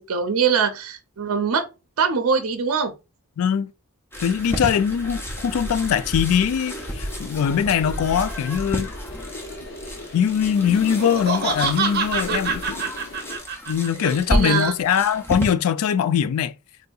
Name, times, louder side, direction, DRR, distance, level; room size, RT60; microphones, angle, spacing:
voice 1, 0.1-1.7 2.0-2.9 12.3-12.4 14.0-14.7, right 6 dB, 75° right, 0.5 m, -23 dB
voice 2, 3.4-3.7 4.2-8.9 10.1-12.8 13.7-16.5, left 8 dB, 75° left, 0.3 m, -22 dB
sound 1, 4.1-15.5, equal, 10° left, 0.4 m, -31 dB
sound 2, 6.6-13.4, left 1 dB, 45° left, 0.8 m, -38 dB
Laughter, 10.8-14.1, right 5 dB, 45° right, 0.8 m, -26 dB
3.7 x 2.7 x 2.3 m
head